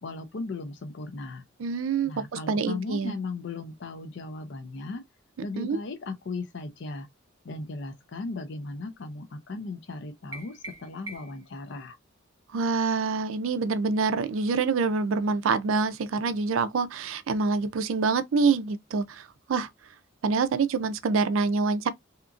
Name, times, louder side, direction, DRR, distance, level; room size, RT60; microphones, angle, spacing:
voice 1, 0.0-1.4 2.0-5.0 5.4-7.1 7.4-12.0, left 3 dB, 60° left, 0.5 m, -37 dB
voice 2, 1.6-2.1 2.5-3.1 5.6-5.8 12.5-19.7 20.2-21.9, right 4 dB, 75° right, 0.4 m, -26 dB
sound 1, 10.3-11.5, right 2 dB, 15° right, 0.7 m, -43 dB
2.8 x 2.4 x 2.4 m
head